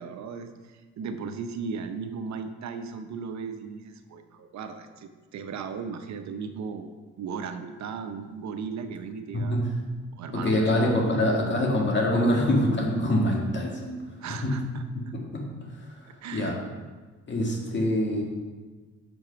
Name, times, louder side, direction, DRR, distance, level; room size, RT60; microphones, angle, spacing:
voice 1, 0.0-6.9 7.2-9.5 10.2-10.7 14.2-14.9 16.1-16.6, right 5 dB, 65° right, 8 dB, 0.7 m, -36 dB
voice 2, 10.3-14.0 14.4-14.5 15.1-15.5 16.0-16.5 17.3-18.2, left 1 dB, 40° left, -1 dB, 1.9 m, -25 dB
6.0 x 5.4 x 5.7 m, 1.3 s
cardioid pair, 90°, 30 cm